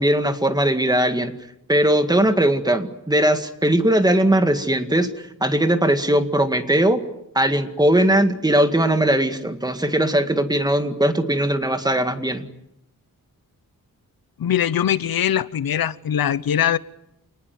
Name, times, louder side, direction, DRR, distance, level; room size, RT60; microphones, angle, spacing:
voice 1, 0.0-1.3 1.7-5.1 5.4-7.0 7.4-12.4, right 1 dB, 10° right, 1.9 m, -19 dB
voice 2, 14.4-16.8, left 10 dB, 75° left, 1.0 m, -21 dB
28.0 x 20.0 x 9.5 m
wide cardioid pair, 150°, 36 cm